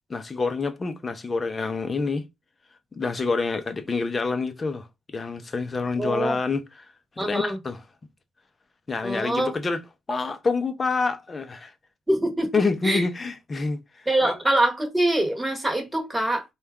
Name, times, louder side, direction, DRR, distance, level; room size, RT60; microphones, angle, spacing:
voice 1, 0.1-2.2 2.9-7.8 8.9-9.8 10.1-11.7 12.5-14.3, left 4 dB, 25° left, 0.6 m, -27 dB
voice 2, 6.0-6.4 7.2-7.6 9.0-9.5 12.1-12.5 12.8-13.1 14.1-16.4, right 1 dB, 10° right, 1.1 m, -24 dB
4.2 x 2.3 x 3.5 m
cardioid pair, 140°, 0 cm